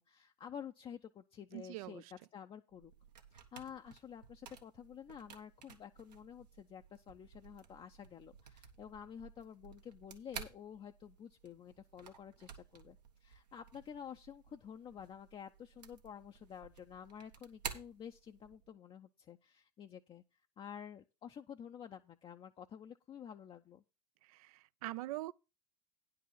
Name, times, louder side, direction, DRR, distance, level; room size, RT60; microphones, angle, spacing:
voice 1, 0.0-2.9 3.3-23.8, left 8 dB, 25° left, 0.5 m, -51 dB
voice 2, 1.5-2.0 24.2-25.3, right 18 dB, 60° right, 0.5 m, -43 dB
sound 1, 2.7-18.7, right 7 dB, 80° right, 1.4 m, -53 dB
9.9 x 4.8 x 7.2 m
hypercardioid pair, 90°, 21 cm